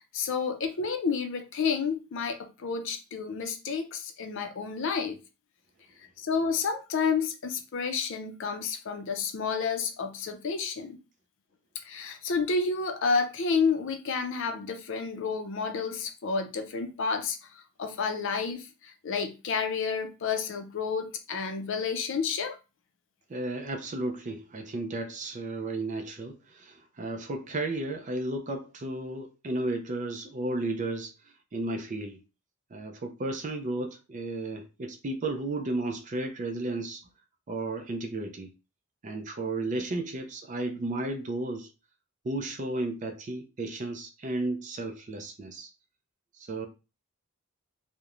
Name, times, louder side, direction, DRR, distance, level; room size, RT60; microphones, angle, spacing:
voice 1, 0.1-5.2 6.2-11.0 11.8-22.6, left 5 dB, 60° left, 0.5 m, -30 dB
voice 2, 23.3-31.1 31.5-32.2 32.7-37.0 37.5-38.5 39.0-41.7 42.2-45.7 46.4-46.7, right 2 dB, 35° right, 0.4 m, -33 dB
2.9 x 2.1 x 2.4 m
head